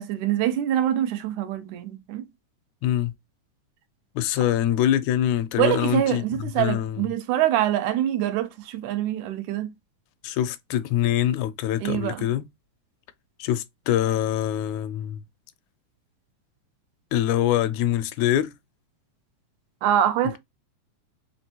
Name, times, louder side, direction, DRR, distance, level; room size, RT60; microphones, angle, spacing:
voice 1, 0.0-2.3 5.6-9.7 11.8-12.3 19.8-20.4, right 11 dB, 80° right, 2.0 m, -24 dB
voice 2, 2.8-3.1 4.1-7.0 10.2-12.4 13.4-15.2 17.1-18.5, left 12 dB, 80° left, 1.8 m, -24 dB
5.1 x 3.2 x 2.7 m
omnidirectional pair, 3.7 m